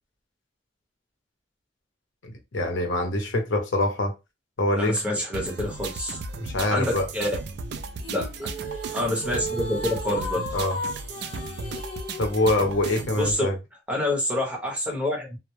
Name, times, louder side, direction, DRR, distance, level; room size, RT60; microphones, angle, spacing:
voice 1, 2.2-4.1 4.6-5.0 6.4-7.1 10.5-10.8 12.2-13.6, left 1 dB, 85° left, 0.7 m, -25 dB
voice 2, 4.8-6.2 6.7-7.3 8.1-8.3 8.9-10.5 13.1-13.5 13.9-15.4, left 1 dB, 5° right, 0.8 m, -27 dB
sound 1, 5.3-13.3, right 3 dB, 55° right, 0.3 m, -35 dB
sound 2, 8.0-12.6, equal, 30° left, 0.9 m, -35 dB
2.1 x 2.0 x 3.0 m
head